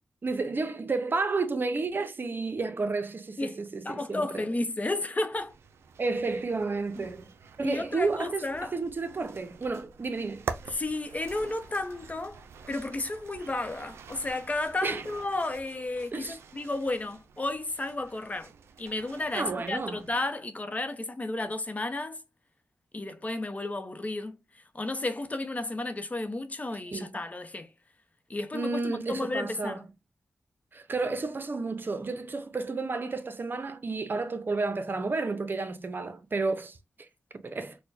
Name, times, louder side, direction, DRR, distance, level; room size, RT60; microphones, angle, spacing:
voice 1, 0.2-4.5 6.0-7.3 7.6-10.6 14.8-15.0 16.1-16.4 19.3-20.0 26.9-27.2 28.5-29.8 30.7-37.1 37.3-37.8, right 3 dB, 50° right, 0.6 m, -31 dB
voice 2, 3.4-5.5 7.0-7.1 7.6-8.7 10.7-12.4 12.7-18.5 18.8-22.2 22.9-27.7 28.3-29.8, left 2 dB, 35° left, 0.7 m, -33 dB
sound 1, 5.3-20.2, right 6 dB, 90° right, 0.3 m, -46 dB
4.3 x 2.1 x 2.6 m
cardioid pair, 40°, 4 cm